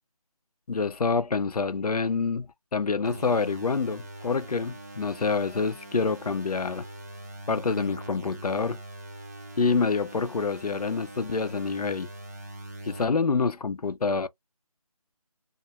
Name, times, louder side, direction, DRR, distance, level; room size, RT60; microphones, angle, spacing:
voice 1, 0.7-6.9 7.5-8.8 9.6-12.1 12.9-14.3, left 4 dB, 90° left, 0.5 m, -27 dB
sound 1, 3.0-13.0, right 2 dB, 25° right, 0.5 m, -43 dB
2.3 x 2.1 x 2.8 m
figure-of-eight pair, 165°, 19 cm